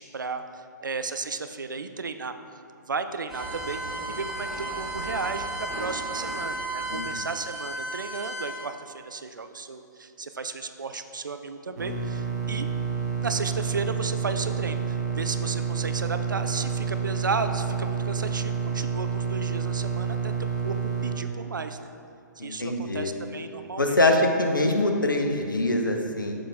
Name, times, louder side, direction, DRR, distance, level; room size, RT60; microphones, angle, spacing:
voice 1, 0.0-2.3 2.8-3.8 4.1-12.7 13.2-20.8 21.0-21.9 22.4-24.0, right 4 dB, 75° right, 9 dB, 0.4 m, -34 dB
sound 1, 3.3-8.6, right 1 dB, ahead, 1.2 m, -33 dB
voice 2, 6.9-7.3 22.4-23.1 23.8-26.4, left 2 dB, 85° left, 3 dB, 0.8 m, -24 dB
sound 2, 11.8-21.1, right 6 dB, 60° right, 1.0 m, -29 dB
6.8 x 5.6 x 3.5 m, 2.5 s
figure-of-eight pair, 125°, 11 cm